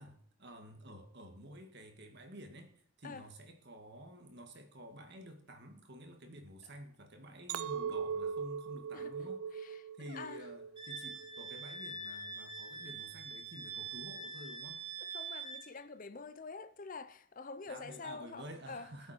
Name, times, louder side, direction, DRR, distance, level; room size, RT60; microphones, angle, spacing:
voice 1, 0.0-14.8 17.7-19.1, equal, 50° right, 2.2 m, -51 dB
Chink clink, 7.5-11.8 12.3-12.7, right 6 dB, 70° right, 0.5 m, -40 dB
voice 2, 8.9-10.5 15.0-18.9, left 4 dB, 40° left, 0.6 m, -47 dB
Wind instrument woodwind instrument, 10.8-15.7, right 4 dB, 25° right, 1.6 m, -44 dB
19.5 x 8.0 x 4.5 m
head